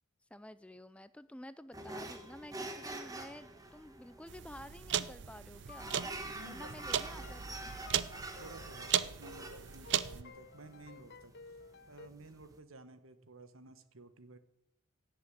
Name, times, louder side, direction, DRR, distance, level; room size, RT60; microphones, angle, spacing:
voice 1, 0.3-5.9 6.5-8.1, left 1 dB, 5° left, 14 dB, 0.4 m, -51 dB
sound 1, 1.7-12.6, right 2 dB, 15° right, 1.3 m, -47 dB
sound 2, 4.3-10.2, right 9 dB, 55° right, 0.6 m, -37 dB
sound 3, 5.6-12.1, left 4 dB, 50° left, 0.6 m, -55 dB
voice 2, 6.3-6.7 7.1-7.4 8.4-11.6 11.9-14.4, right 2 dB, 80° right, 11 dB, 1.4 m, -54 dB
16.5 x 6.9 x 9.4 m, 0.83 s
head